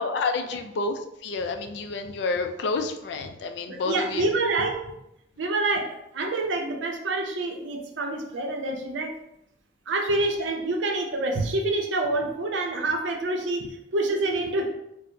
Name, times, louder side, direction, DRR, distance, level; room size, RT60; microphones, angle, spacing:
voice 1, 0.0-4.3, left 3 dB, 65° left, 6 dB, 0.3 m, -29 dB
voice 2, 3.7-4.9 5.4-9.1 9.9-14.7, right 2 dB, 80° right, 2 dB, 0.5 m, -27 dB
4.3 x 2.0 x 2.6 m, 0.82 s
head